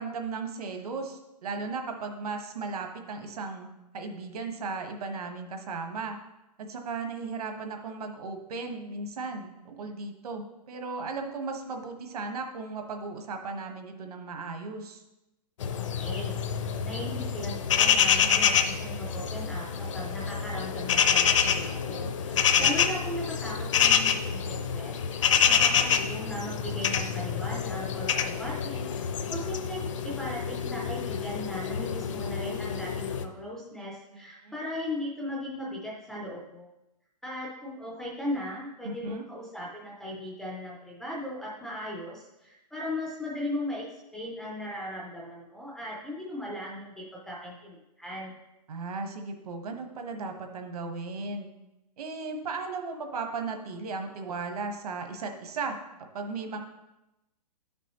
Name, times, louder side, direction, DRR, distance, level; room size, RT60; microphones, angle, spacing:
voice 1, 0.0-3.7 3.9-6.2 6.6-15.0 22.3-22.7 34.4-34.5 38.8-39.2 48.7-51.5 52.0-55.8 56.1-56.6, right 4 dB, 65° right, 4 dB, 1.3 m, -36 dB
sound 1, 15.6-33.2, left 7 dB, 50° left, 0.6 m, -27 dB
voice 2, 15.7-16.4 16.8-25.0 25.5-36.7 37.2-48.4, left 1 dB, ahead, -5 dB, 0.4 m, -38 dB
11.0 x 6.1 x 3.0 m, 0.95 s
hypercardioid pair, 170°, 21 cm